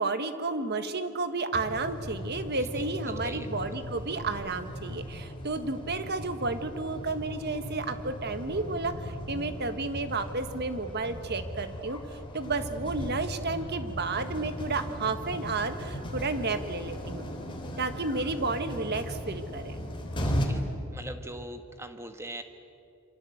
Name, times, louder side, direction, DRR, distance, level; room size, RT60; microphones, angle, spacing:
voice 1, 0.0-17.3 17.8-19.8, right 3 dB, 45° right, 9 dB, 1.6 m, -32 dB
sound 1, 1.5-20.5, equal, 20° left, 3.3 m, -37 dB
voice 2, 2.6-3.8 20.2-20.6 20.9-22.4, right 1 dB, 10° right, 7 dB, 1.5 m, -42 dB
27.5 x 24.5 x 8.0 m, 2.7 s
head